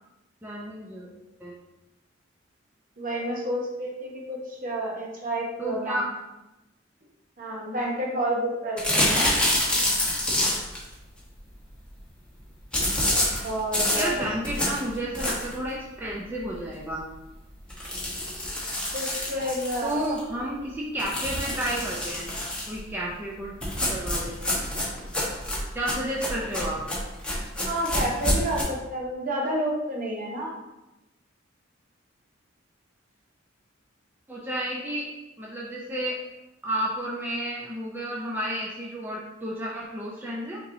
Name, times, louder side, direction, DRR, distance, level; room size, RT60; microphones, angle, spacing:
voice 1, 0.4-1.1 1.4-1.5 5.6-6.1 13.9-17.1 19.8-22.3 22.7-23.6 23.9-24.6 25.7-26.8 34.3-35.1 35.4-36.2 36.6-40.6, right 1 dB, 10° right, -5 dB, 0.5 m, -31 dB
voice 2, 3.0-6.0 7.4-9.4 13.1-14.3 18.9-20.0 27.7-30.5, right 1 dB, 45° right, -1 dB, 0.9 m, -30 dB
sound 1, 8.8-10.8 12.7-15.6 16.1-16.2 16.5-16.6 16.9-17.0 17.7-20.2 21.0-22.8 23.6-28.6, left 1 dB, 5° left, 1.0 m, -27 dB
5.8 x 2.9 x 2.6 m, 0.98 s
head